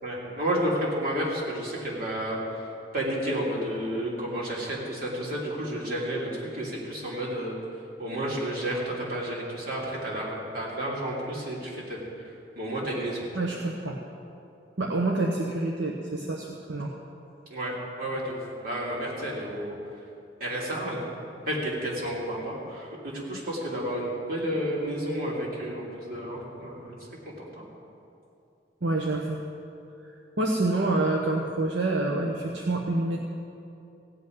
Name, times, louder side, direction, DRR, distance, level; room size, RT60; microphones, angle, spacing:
voice 1, 0.0-2.7 2.9-7.6 8.0-12.1 12.5-13.3 17.5-19.7 20.4-21.0 21.5-27.0 27.4-27.6, right 1 dB, 50° right, -5 dB, 3.2 m, -31 dB
voice 2, 13.3-14.0 14.8-16.9 28.8-29.4 30.0-30.1 30.4-33.2, right 2 dB, 75° right, 0 dB, 1.0 m, -27 dB
16.5 x 5.6 x 9.3 m, 2.7 s
head